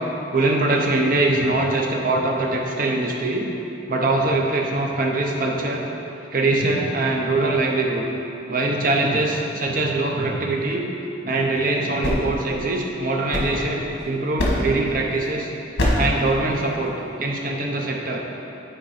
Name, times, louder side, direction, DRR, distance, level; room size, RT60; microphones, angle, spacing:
voice 1, 0.3-3.5 3.9-5.9 6.3-8.0 8.5-10.9 11.2-15.5 15.9-18.2, right 2 dB, 45° right, 0 dB, 0.8 m, -22 dB
sound 1, 11.8-14.0 14.4-14.9 15.8-16.2, left 1 dB, 60° left, 1.3 m, -24 dB
9.0 x 4.5 x 4.2 m, 3.0 s
head